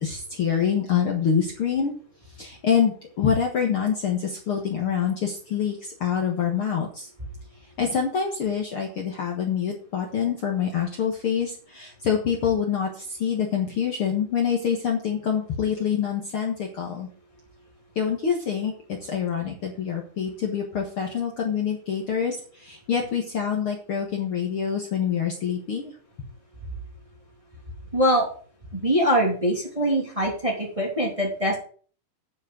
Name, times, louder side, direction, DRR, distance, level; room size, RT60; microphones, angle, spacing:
voice 1, 0.0-1.9 2.4-7.1 7.8-17.1 17.9-25.9, left 7 dB, 80° left, 0 dB, 1.2 m, -26 dB
voice 2, 27.9-28.3 28.8-31.6, equal, 10° right, -1 dB, 2.1 m, -23 dB
9.7 x 6.2 x 7.9 m, 0.43 s
omnidirectional pair, 5.0 m